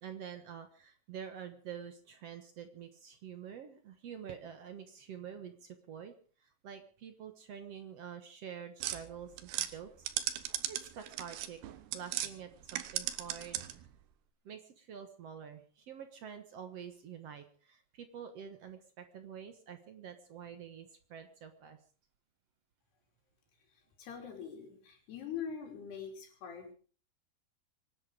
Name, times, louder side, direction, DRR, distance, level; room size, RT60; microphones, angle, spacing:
voice 1, 0.0-10.1 10.4-11.6 11.9-13.9 14.4-21.8, right 8 dB, 65° right, 7 dB, 1.6 m, -47 dB
sound 1, 8.8-12.3 12.6-13.9, right 13 dB, 90° right, 3.2 m, -37 dB
voice 2, 23.7-26.7, left 7 dB, 75° left, 3 dB, 5.4 m, -43 dB
25.0 x 11.0 x 5.1 m, 0.42 s
omnidirectional pair, 4.7 m